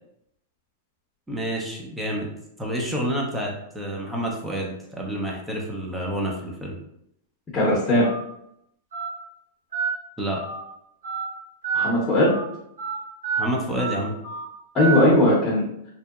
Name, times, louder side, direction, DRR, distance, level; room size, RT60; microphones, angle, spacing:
voice 1, 1.3-2.3 2.6-6.8 10.2-10.4 13.4-14.1, right 1 dB, 10° right, -2 dB, 0.5 m, -28 dB
voice 2, 7.5-8.1 11.7-12.4 14.7-15.6, left 1 dB, 20° left, -8 dB, 0.8 m, -18 dB
Telephone, 8.0-8.2 8.9-9.1 9.7-9.9 10.4-10.6 11.0-11.2 11.6-11.9 12.3-12.4 12.8-12.9 13.2-13.4 13.8-13.9 14.2-14.4 14.8-15.0, right 6 dB, 90° right, 1.3 m, -28 dB
2.7 x 2.0 x 2.3 m, 0.76 s
hypercardioid pair, 125°, 0 cm